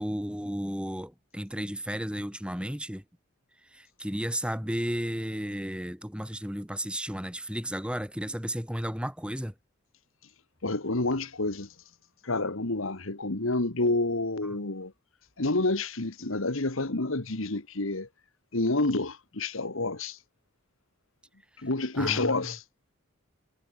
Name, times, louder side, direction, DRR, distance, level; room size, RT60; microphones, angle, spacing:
voice 1, 0.0-3.0 3.7-9.5 14.4-14.6 22.0-22.5, equal, 5° right, 4.9 m, -33 dB
voice 2, 10.6-11.7 12.2-14.9 15.4-18.1 18.5-20.2 21.6-22.6, left 2 dB, 70° left, 1.8 m, -28 dB
head